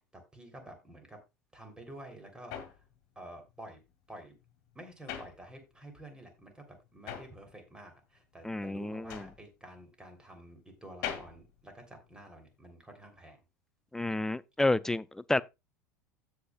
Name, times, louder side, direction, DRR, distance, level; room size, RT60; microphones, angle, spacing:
voice 1, 0.1-1.2 1.5-2.8 3.1-3.8 4.1-4.3 4.7-13.4, right 1 dB, 10° right, 3.1 m, -50 dB
sound 1, 1.7-6.0 6.3-12.6, left 9 dB, 50° left, 1.9 m, -45 dB
voice 2, 8.4-9.3 13.9-15.4, left 2 dB, 5° left, 0.4 m, -30 dB
16.0 x 5.7 x 2.3 m
figure-of-eight pair, 75°, 9 cm